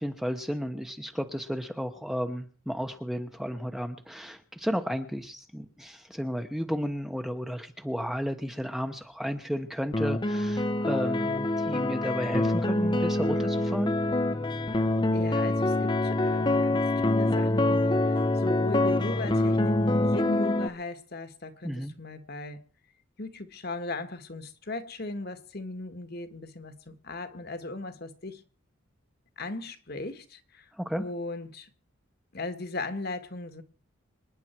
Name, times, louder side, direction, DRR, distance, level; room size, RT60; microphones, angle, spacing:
voice 1, 0.0-13.9 21.6-21.9 30.8-31.0, equal, ahead, 1.0 m, -33 dB
sound 1, 9.9-20.7, left 2 dB, 20° left, 0.8 m, -25 dB
voice 2, 15.1-22.6 23.2-28.4 29.4-31.7 32.3-33.6, left 2 dB, 50° left, 1.6 m, -37 dB
26.5 x 10.5 x 4.5 m
head